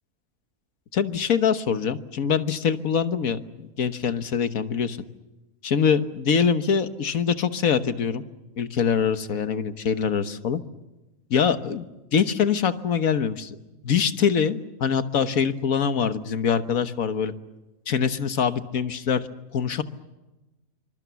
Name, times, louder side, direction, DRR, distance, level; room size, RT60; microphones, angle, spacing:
voice 1, 0.9-5.0 5.6-8.2 8.6-10.6 11.3-11.8 12.1-13.6 13.8-17.3 17.9-19.2 19.5-19.8, left 7 dB, 80° left, 10 dB, 1.7 m, -24 dB
27.0 x 25.0 x 7.0 m, 1.0 s
omnidirectional pair, 1.4 m